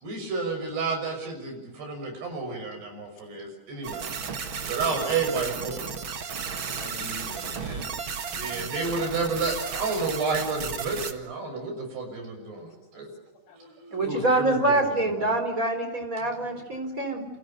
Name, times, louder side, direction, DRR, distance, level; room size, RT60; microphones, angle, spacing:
voice 1, 0.0-4.1 4.7-5.8 7.3-7.9 8.3-13.1, right 4 dB, 75° right, 5 dB, 8.7 m, -30 dB
sound 1, 3.8-11.1, right 6 dB, 50° right, 1.6 m, -34 dB
voice 2, 6.5-7.9 8.3-8.7 13.5-15.3, left 1 dB, 85° left, 2 dB, 8.5 m, -39 dB
voice 3, 13.9-17.2, right 2 dB, 20° right, 5 dB, 4.3 m, -25 dB
29.5 x 28.0 x 6.9 m, 1.0 s
omnidirectional pair, 4.7 m